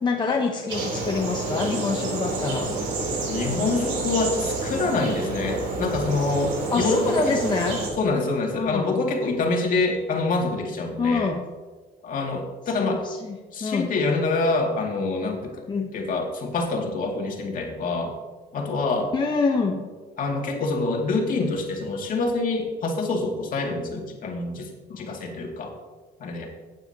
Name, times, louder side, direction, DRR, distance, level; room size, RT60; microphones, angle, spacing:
voice 1, 0.0-2.7 6.7-7.8 8.5-9.0 11.0-11.4 12.7-13.4 13.6-13.9 15.7-15.9 19.1-19.9, left 4 dB, 25° left, 1 dB, 1.0 m, -26 dB
sound 1, 0.7-7.9, right 3 dB, 90° right, 3.5 m, -28 dB
voice 2, 3.3-7.4 8.0-11.3 12.0-13.0 13.5-18.1 18.5-19.1 20.2-25.7 26.2-26.5, left 3 dB, 55° left, 0 dB, 2.3 m, -26 dB
15.5 x 9.0 x 2.9 m, 1.4 s
cardioid pair, 110°, 17 cm